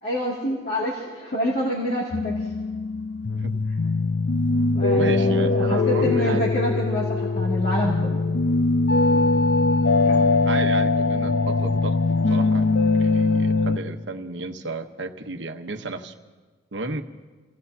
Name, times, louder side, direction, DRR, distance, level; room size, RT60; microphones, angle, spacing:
voice 1, 0.0-2.5 4.7-8.2 9.1-9.3 10.0-10.3, equal, 60° left, -5 dB, 2.5 m, -27 dB
sound 1, 2.1-13.8, left 3 dB, 75° left, 0.6 m, -21 dB
voice 2, 4.9-6.5 10.4-12.7 13.0-16.1 16.7-17.0, right 3 dB, 85° right, 5 dB, 1.1 m, -32 dB
29.0 x 17.5 x 2.8 m, 1.4 s
head